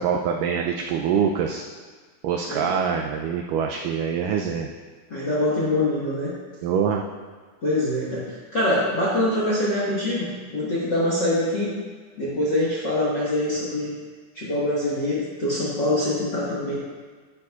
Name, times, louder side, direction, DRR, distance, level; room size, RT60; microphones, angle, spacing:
voice 1, 0.0-1.6 2.2-4.7 6.6-7.0, right 7 dB, 90° right, 2 dB, 1.8 m, -24 dB
voice 2, 5.1-6.3 7.6-11.7 12.2-13.9 14.3-16.8, left 1 dB, 50° left, -7 dB, 1.3 m, -24 dB
11.0 x 11.0 x 2.4 m, 1.5 s
omnidirectional pair, 4.4 m